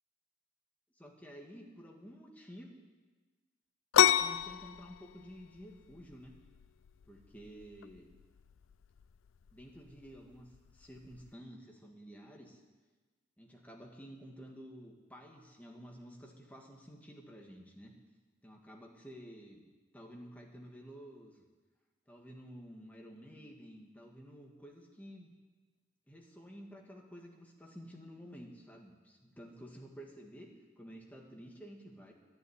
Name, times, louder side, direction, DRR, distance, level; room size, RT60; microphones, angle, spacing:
voice 1, 1.0-2.8 4.2-6.4 7.1-8.1 9.5-12.6 13.4-17.9 18.4-19.7 19.9-21.4 22.1-25.3 26.1-30.5 30.8-32.1, equal, 10° left, 0 dB, 1.8 m, -51 dB
sound 1, 3.9-11.3, left 10 dB, 80° left, 0.4 m, -33 dB
11.5 x 10.5 x 9.7 m, 1.3 s
head